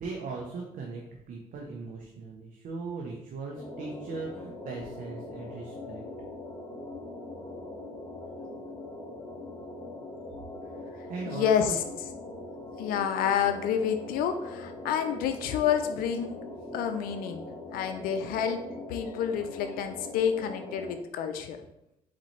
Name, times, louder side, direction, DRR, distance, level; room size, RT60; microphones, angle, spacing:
voice 1, 0.0-6.0 10.8-11.8, right 4 dB, 65° right, 0 dB, 0.8 m, -39 dB
sound 1, 3.6-20.9, left 2 dB, 35° left, 1.2 m, -42 dB
voice 2, 10.9-11.8 12.8-16.4 16.7-17.4 17.7-18.6 18.9-21.6, left 8 dB, 80° left, 7 dB, 0.5 m, -29 dB
4.1 x 3.8 x 3.2 m, 0.83 s
supercardioid pair, 65°, 15 cm